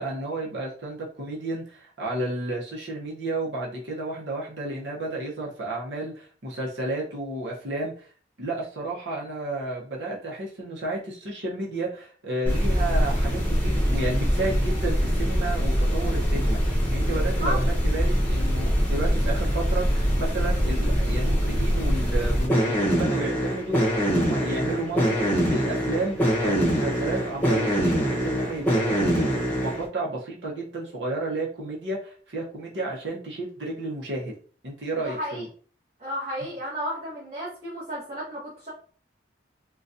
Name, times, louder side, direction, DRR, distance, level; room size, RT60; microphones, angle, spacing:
voice 1, 0.0-7.9 8.4-34.3 34.6-35.5, right 2 dB, 75° right, -3 dB, 0.8 m, -32 dB
sound 1, 12.5-29.9, equal, 10° left, 0.9 m, -24 dB
voice 2, 17.1-17.6 34.9-35.4 36.0-38.7, equal, 35° right, -8 dB, 1.1 m, -33 dB
3.9 x 2.3 x 2.6 m, 0.43 s
head